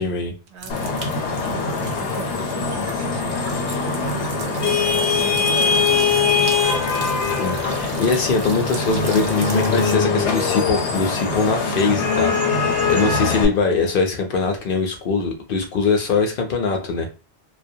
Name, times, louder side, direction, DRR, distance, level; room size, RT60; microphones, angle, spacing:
voice 1, 0.0-0.3 7.4-17.1, left 4 dB, 60° left, 0.7 m, -22 dB
voice 2, 0.5-6.9, right 6 dB, 85° right, 0.9 m, -37 dB
sound 1, 0.6-9.9, right 3 dB, 55° right, 0.7 m, -36 dB
Vehicle horn car horn honking / Traffic noise roadway noise, 0.7-13.5, left 4 dB, 85° left, 0.9 m, -22 dB
sound 2, 8.7-13.9, equal, 30° right, 0.8 m, -40 dB
2.2 x 2.2 x 2.6 m
omnidirectional pair, 1.1 m